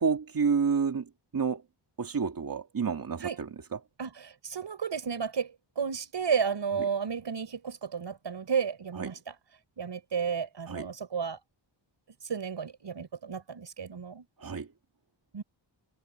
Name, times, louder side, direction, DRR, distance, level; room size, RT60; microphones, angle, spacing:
voice 1, 0.0-1.6 2.0-3.8 6.8-6.9 8.9-9.2 10.7-10.9 14.4-14.7, right 5 dB, 45° right, 2.3 m, -30 dB
voice 2, 4.0-9.1 9.8-11.4 12.3-14.2 15.3-15.4, right 6 dB, 65° right, 5.4 m, -32 dB
wide cardioid pair, 140°, 46 cm